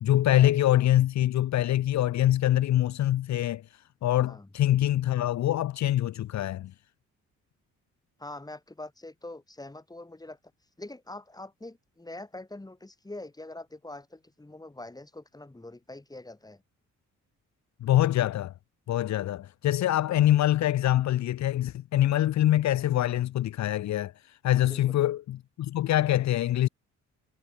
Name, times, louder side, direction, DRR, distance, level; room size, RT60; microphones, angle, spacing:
voice 1, 0.0-3.6 4.0-6.7 17.8-18.5 18.9-24.1 24.4-26.7, left 13 dB, 65° left, 0.9 m, -24 dB
voice 2, 8.2-10.4 10.8-16.6 24.6-25.0, left 2 dB, 10° left, 5.9 m, -44 dB
cardioid pair, 90°, 30 cm